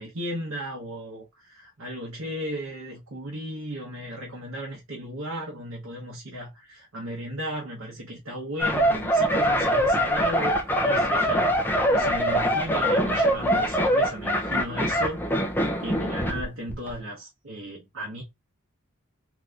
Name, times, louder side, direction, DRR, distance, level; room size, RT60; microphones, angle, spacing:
voice 1, 0.0-11.5 11.9-15.2 15.8-18.2, equal, 70° right, 0.9 m, -35 dB
sound 1, 8.6-16.4 16.7-16.9, equal, 10° left, 0.5 m, -23 dB
3.3 x 2.8 x 2.4 m
head